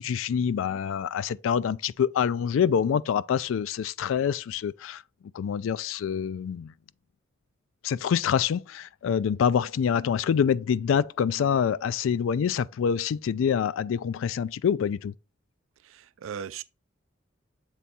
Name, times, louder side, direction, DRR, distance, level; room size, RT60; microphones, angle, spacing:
voice 1, 0.0-5.0 5.3-6.7 7.8-15.1, left 7 dB, 75° left, 0.3 m, -26 dB
voice 2, 15.8-16.6, right 8 dB, 85° right, 0.4 m, -38 dB
7.4 x 3.4 x 4.1 m
head